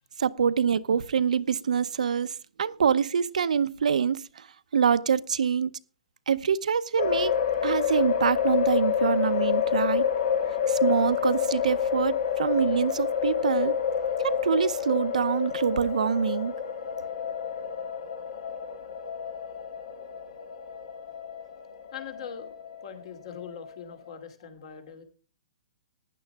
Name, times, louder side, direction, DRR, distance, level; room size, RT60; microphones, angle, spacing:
voice 1, 0.2-4.5 4.7-5.7 6.3-10.1 10.7-13.7 14.2-16.5, right 7 dB, 85° right, 0.8 m, -25 dB
sound 1, 7.0-23.9, left 8 dB, 70° left, 2.7 m, -28 dB
voice 2, 21.8-22.5 22.8-25.0, left 7 dB, 50° left, 2.7 m, -42 dB
15.5 x 10.0 x 3.5 m
hypercardioid pair, 165°, 4 cm